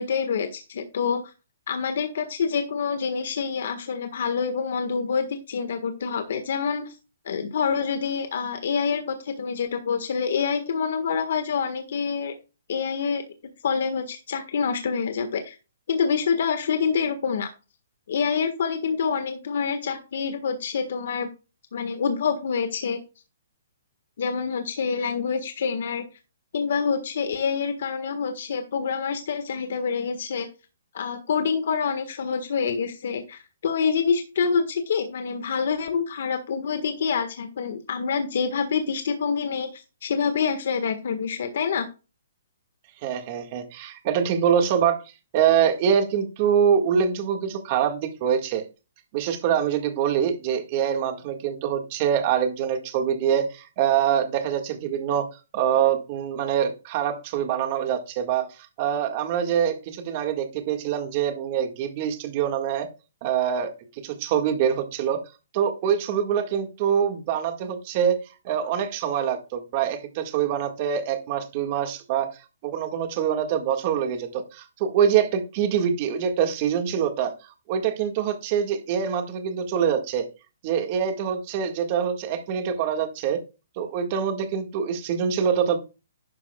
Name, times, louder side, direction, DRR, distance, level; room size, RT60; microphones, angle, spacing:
voice 1, 0.0-1.3 1.7-7.0 7.2-12.3 12.7-13.2 13.6-15.5 15.9-17.5 18.1-21.3 21.7-23.0 24.2-26.0 26.5-30.5 30.9-41.9, left 6 dB, 55° left, 7 dB, 1.6 m, -26 dB
voice 2, 43.0-45.0 45.3-48.6 49.1-55.3 55.5-58.5 58.8-62.9 63.2-63.7 64.0-65.2 65.5-68.2 68.4-72.3 72.6-77.3 77.7-80.2 80.6-83.4 83.8-85.8, right 8 dB, 30° right, 6 dB, 1.8 m, -24 dB
12.0 x 9.6 x 2.4 m, 0.30 s
hypercardioid pair, 170°, 0 cm